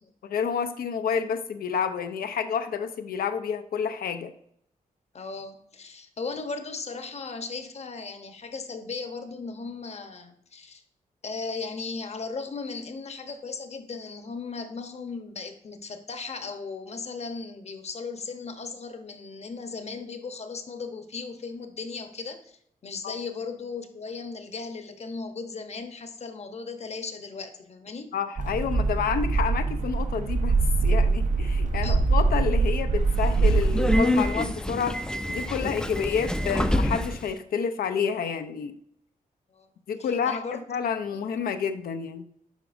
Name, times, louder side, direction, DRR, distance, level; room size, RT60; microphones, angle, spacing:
voice 1, 0.2-4.3 23.0-23.1 28.1-30.6 30.8-38.8 39.9-42.3, left 7 dB, 85° left, 8 dB, 0.5 m, -29 dB
voice 2, 5.1-10.8 11.2-22.6 22.8-28.1 31.8-32.0 36.0-36.2 39.5-39.7 40.0-40.6 41.1-41.2, left 4 dB, 45° left, 7 dB, 0.8 m, -37 dB
sound 1, 28.4-34.0, right 3 dB, 60° right, 0.6 m, -23 dB
Subway metro underground, 33.1-37.3, left 1 dB, 5° left, 0.4 m, -27 dB
8.1 x 4.8 x 2.6 m, 0.70 s
cardioid pair, 80°, 15 cm